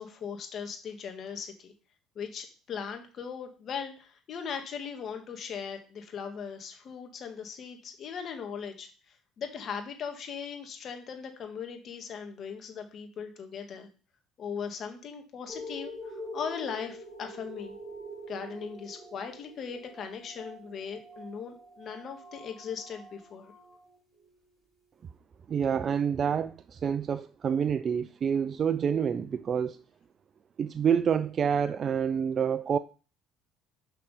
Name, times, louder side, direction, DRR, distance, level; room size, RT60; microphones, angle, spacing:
voice 1, 0.0-1.7 2.2-8.9 9.4-13.9 14.4-17.8 18.3-23.5, left 6 dB, 50° left, 1.9 m, -39 dB
sound 1, 15.5-24.4 25.0-25.1, equal, 15° right, 4.3 m, -45 dB
voice 2, 25.5-29.8 30.6-32.8, right 7 dB, 45° right, 0.4 m, -27 dB
6.1 x 5.9 x 5.0 m
supercardioid pair, 75°, 0 cm